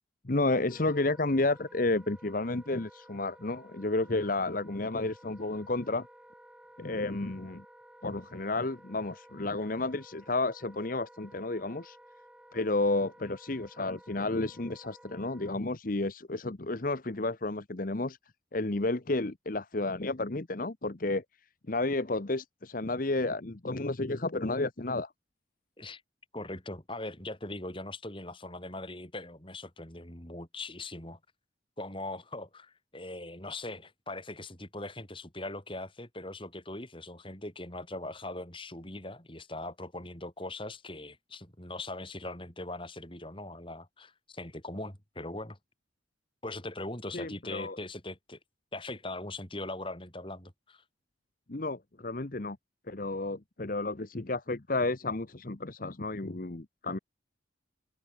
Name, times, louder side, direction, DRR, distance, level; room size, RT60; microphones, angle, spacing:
voice 1, 0.2-6.1 6.8-7.6 8.0-12.0 12.5-18.2 18.5-21.2 21.7-25.1 47.1-47.8 51.5-52.6 52.9-57.0, left 2 dB, 45° left, 1.0 m, -31 dB
Wind instrument woodwind instrument, 0.6-15.6, right 1 dB, 5° right, 3.6 m, -55 dB
voice 2, 26.3-31.2 31.8-45.6 46.4-48.4 48.7-50.8, left 2 dB, 25° left, 4.7 m, -40 dB
open air
head